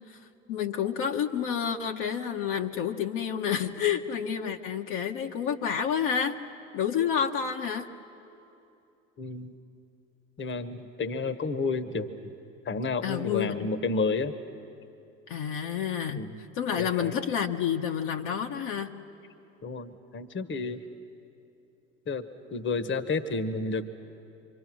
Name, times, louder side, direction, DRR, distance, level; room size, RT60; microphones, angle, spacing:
voice 1, 0.5-6.4 6.7-7.9 13.0-13.7 15.3-16.3 16.5-18.9, left 8 dB, 55° left, 2 dB, 1.2 m, -29 dB
voice 2, 9.2-9.5 10.4-12.3 12.6-14.3 16.2-16.4 16.8-17.2 19.6-20.8 22.1-23.9, left 3 dB, 30° left, 11 dB, 1.3 m, -31 dB
26.0 x 25.0 x 6.3 m, 2.7 s
hypercardioid pair, 70°, 39 cm